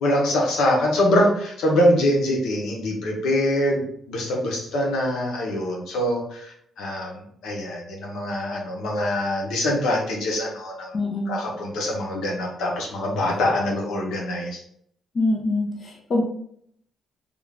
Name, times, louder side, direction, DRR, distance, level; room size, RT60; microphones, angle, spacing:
voice 1, 0.0-3.8 4.1-10.9 11.3-14.6, left 1 dB, 80° left, -1 dB, 0.9 m, -24 dB
voice 2, 10.9-11.3 15.1-16.2, left 2 dB, 45° left, 0 dB, 0.9 m, -24 dB
3.5 x 2.4 x 3.4 m, 0.66 s
cardioid pair, 90°, 0 cm